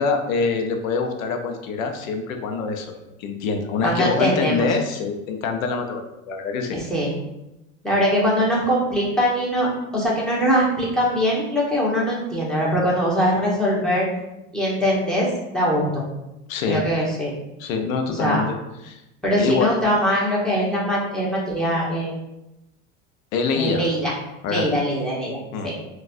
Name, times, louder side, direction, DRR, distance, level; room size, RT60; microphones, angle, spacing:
voice 1, 0.0-6.8 16.5-16.9 17.6-18.5 18.8-19.0 19.4-19.7 23.3-23.8 24.4-24.7 25.5-25.7, left 4 dB, 80° left, 4 dB, 0.7 m, -25 dB
voice 2, 3.8-4.7 6.7-7.1 7.8-14.1 14.5-15.3 15.5-16.0 16.7-17.3 18.1-18.4 19.2-22.2 23.5-24.1 24.5-25.4 25.6-25.7, equal, ahead, -6 dB, 1.2 m, -22 dB
3.8 x 2.4 x 2.6 m, 0.93 s
hypercardioid pair, 100°, 40 cm